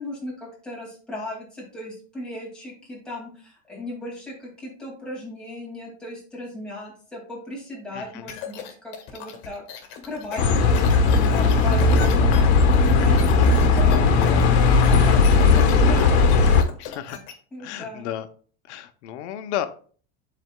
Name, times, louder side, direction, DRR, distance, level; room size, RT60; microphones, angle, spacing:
voice 1, 0.0-16.6 17.5-18.1, left 1 dB, 5° left, -5 dB, 2.3 m, -37 dB
voice 2, 7.9-8.3 16.8-17.2 17.6-18.3 18.7-19.7, left 11 dB, 85° left, 10 dB, 0.8 m, -32 dB
sound 1, 8.3-17.3, left 8 dB, 55° left, 1.6 m, -37 dB
Bus, 10.4-16.6, left 4 dB, 70° left, 1.2 m, -17 dB
11.0 x 4.2 x 2.2 m, 0.43 s
supercardioid pair, 160°, 33 cm